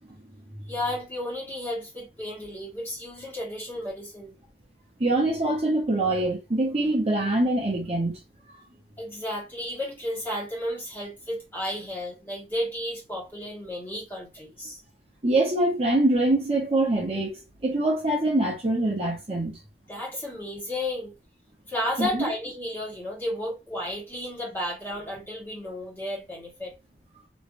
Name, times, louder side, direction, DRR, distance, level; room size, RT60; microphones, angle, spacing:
voice 1, 0.7-4.3 9.0-14.8 19.9-21.1 21.7-26.7, left 1 dB, 15° left, 1.6 m, -33 dB
voice 2, 5.0-8.2 15.2-19.6 22.0-22.3, right 2 dB, 35° right, 0.9 m, -24 dB
3.1 x 3.1 x 2.6 m
head